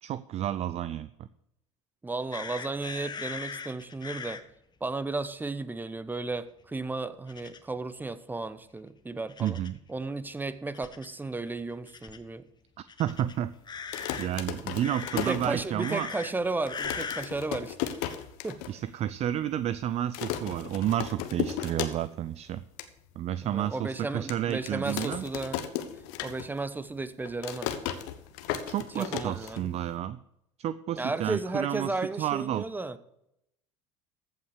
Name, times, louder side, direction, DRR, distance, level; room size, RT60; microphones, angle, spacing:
voice 1, 0.0-1.3 9.4-9.8 13.0-13.5 14.2-16.1 18.7-22.6 23.2-25.3 28.7-30.2 30.6-32.7, right 11 dB, 45° right, 15 dB, 0.5 m, -31 dB
voice 2, 2.0-4.4 4.8-9.6 9.9-12.5 15.1-17.9 18.4-18.6 23.4-25.6 26.2-27.7 28.9-29.7 31.0-33.0, right 3 dB, 10° right, 14 dB, 1.0 m, -34 dB
sound 1, 2.3-4.4 7.3-7.6 9.3-9.8 10.7-11.1 11.9-12.2 12.9-14.3 14.8-15.5 15.8-16.3 16.7-17.3 17.9-18.2, left 5 dB, 25° left, 1.3 m, -39 dB
sound 2, 9.6-9.7 10.2-10.3 10.8-11.0 12.1-12.2 13.2-13.4 14.4-14.5 15.5-15.8 16.8-16.9, left 2 dB, 5° left, 1.9 m, -55 dB
sound 3, 13.8-16.0 16.4-16.5 16.7-18.7 19.1-19.2 19.4-19.7 20.1-22.3 22.6-22.9 23.4-23.5 24.3-26.7 27.0-29.9, left 11 dB, 70° left, 1.2 m, -35 dB
14.5 x 5.7 x 6.5 m, 0.79 s
hypercardioid pair, 75°, 16 cm